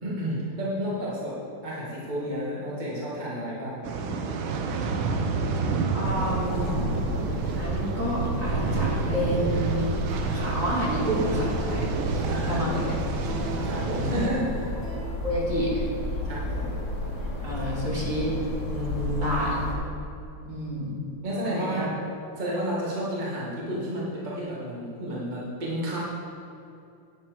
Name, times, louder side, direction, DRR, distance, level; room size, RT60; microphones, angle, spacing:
voice 1, 0.0-1.4 1.6-4.1 6.3-6.8 12.3-12.8 13.2-13.3 13.6-14.8 16.2-16.8 17.5-17.6 18.7-19.4 21.2-21.9 22.4-26.0, equal, 20° right, -6 dB, 1.8 m, -31 dB
sound 1, 3.8-14.3, right 4 dB, 75° right, 1.5 m, -29 dB
voice 2, 5.9-6.8 7.5-9.9 10.2-12.9 15.2-15.8 17.4-18.3 19.2-19.6 20.4-21.0 21.4-21.9, equal, 40° right, -6 dB, 2.3 m, -29 dB
sound 2, 6.0-19.7, left 2 dB, 55° left, 2.6 m, -33 dB
sound 3, 7.0-15.0, right 1 dB, 35° left, 2.4 m, -42 dB
10.5 x 7.5 x 5.0 m, 2.6 s
omnidirectional pair, 2.3 m